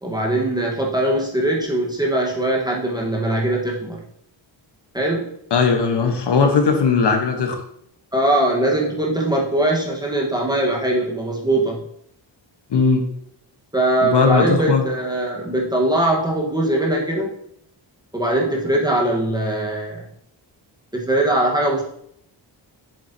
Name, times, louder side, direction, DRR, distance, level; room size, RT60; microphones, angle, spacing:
voice 1, 0.0-4.0 4.9-5.3 8.1-11.8 13.7-17.3 18.1-20.1 20.9-21.8, right 1 dB, 10° right, -3 dB, 1.3 m, -21 dB
voice 2, 5.5-7.6 12.7-13.0 14.0-14.8, left 5 dB, 60° left, 4 dB, 1.2 m, -18 dB
7.5 x 7.2 x 2.8 m, 0.69 s
wide cardioid pair, 160°, 45 cm